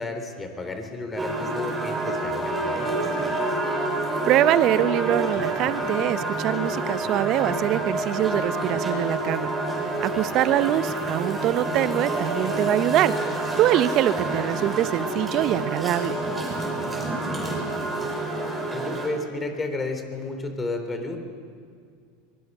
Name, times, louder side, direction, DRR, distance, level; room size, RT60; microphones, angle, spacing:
voice 1, 0.0-2.9 10.1-10.2 17.3-18.1 18.7-21.2, left 2 dB, 20° left, 6 dB, 3.6 m, -32 dB
sound 1, 1.2-19.1, right 2 dB, 10° right, 6.1 m, -28 dB
voice 2, 4.2-9.5 10.0-13.1 13.6-16.2, right 13 dB, 50° right, 15 dB, 0.8 m, -23 dB
23.5 x 20.5 x 5.6 m, 2.2 s
hypercardioid pair, 85°, 0 cm